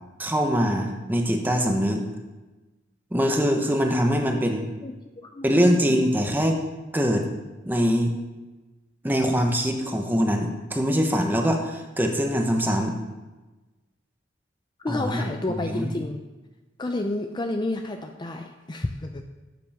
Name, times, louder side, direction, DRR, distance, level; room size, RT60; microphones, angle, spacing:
voice 1, 0.2-2.0 3.1-4.7 5.4-6.6 6.9-7.3 7.6-8.1 9.0-12.9 14.9-15.2 15.5-15.9, equal, 10° right, 3 dB, 1.0 m, -23 dB
voice 2, 4.8-5.9 14.8-16.2 16.8-19.2, left 2 dB, 25° left, 5 dB, 0.5 m, -30 dB
12.0 x 8.0 x 3.6 m, 1.1 s
head